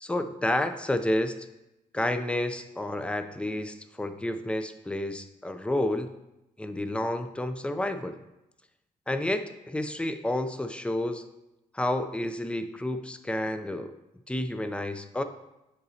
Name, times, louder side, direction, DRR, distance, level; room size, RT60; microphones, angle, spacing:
voice 1, 0.0-1.5 1.9-6.1 6.6-8.2 9.1-11.2 11.7-13.9 14.3-15.2, left 1 dB, 5° left, 9 dB, 0.5 m, -30 dB
9.6 x 4.0 x 2.8 m, 0.94 s
cardioid pair, 75°, 16 cm